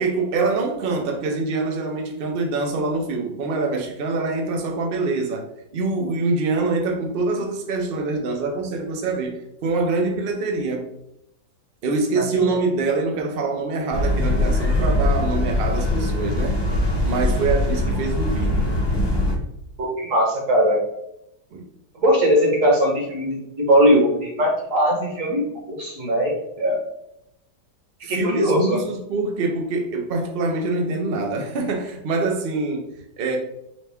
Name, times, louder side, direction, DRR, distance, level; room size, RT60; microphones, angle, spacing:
voice 1, 0.0-5.4 5.7-10.9 11.8-16.6 17.0-18.5 21.5-21.6 28.0-33.4, right 3 dB, 80° right, 2 dB, 0.5 m, -25 dB
voice 2, 12.2-12.5 19.8-20.8 22.0-26.8 28.1-28.8, equal, 50° right, 0 dB, 1.4 m, -20 dB
sound 1, 13.9-19.4, left 1 dB, 30° left, 0.4 m, -22 dB
5.1 x 2.2 x 3.4 m, 0.80 s
omnidirectional pair, 1.9 m